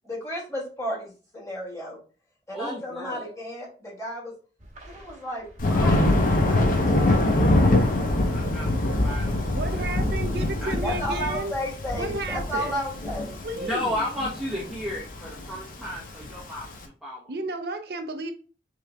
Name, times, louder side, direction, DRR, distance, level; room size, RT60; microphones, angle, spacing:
voice 1, 0.0-2.0 2.5-4.3 4.9-6.0 6.4-7.2 10.8-13.3, equal, 15° left, 2.0 m, -33 dB
voice 2, 2.5-3.3 8.2-11.0 13.6-16.7 17.0-17.3, left 1 dB, 5° right, 0.9 m, -34 dB
sound 1, 4.6-10.3, right 1 dB, 45° right, 1.0 m, -39 dB
Thunder, 5.6-16.7, left 1 dB, 50° left, 0.8 m, -24 dB
voice 3, 9.5-11.5 11.9-12.8 13.4-14.0 17.3-18.3, right 2 dB, 60° right, 0.5 m, -33 dB
6.2 x 3.8 x 2.2 m
head